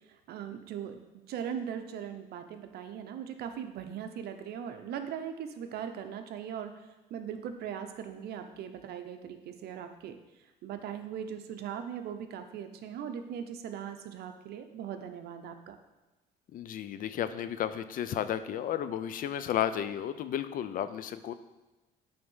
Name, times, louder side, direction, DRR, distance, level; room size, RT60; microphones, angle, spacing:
voice 1, 0.3-1.0 1.3-6.7 7.1-10.1 10.6-15.8, right 8 dB, 70° right, 7 dB, 0.8 m, -39 dB
voice 2, 16.5-21.3, left 10 dB, 55° left, 12 dB, 0.5 m, -33 dB
8.6 x 3.5 x 5.5 m, 1.1 s
cardioid pair, 110°, 17 cm